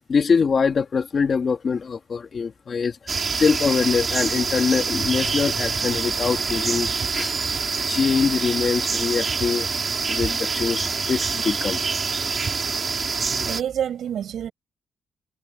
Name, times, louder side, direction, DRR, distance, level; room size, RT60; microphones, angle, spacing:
voice 1, 0.0-7.3 7.9-9.7 10.1-11.8, left 5 dB, 35° left, 2.6 m, -23 dB
sound 1, 3.1-13.6, right 5 dB, 30° right, 4.8 m, -26 dB
voice 2, 13.4-14.5, right 9 dB, 60° right, 7.5 m, -27 dB
cardioid pair, 125°, 0 cm